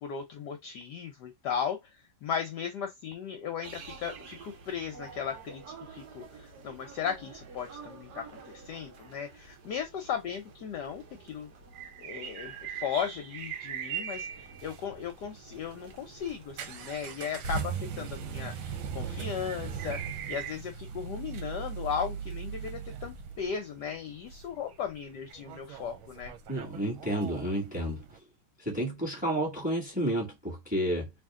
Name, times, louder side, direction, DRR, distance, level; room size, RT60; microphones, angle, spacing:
voice 1, 0.0-1.8 2.2-5.6 5.9-11.5 12.0-20.0 20.3-26.3, left 7 dB, 70° left, 1.1 m, -36 dB
sound 1, 3.6-20.5, right 8 dB, 60° right, 1.4 m, -44 dB
sound 2, 14.3-28.2, right 6 dB, 85° right, 1.5 m, -40 dB
voice 2, 26.5-28.2 28.6-31.1, right 1 dB, 5° right, 1.6 m, -31 dB
3.5 x 2.9 x 3.6 m
omnidirectional pair, 2.3 m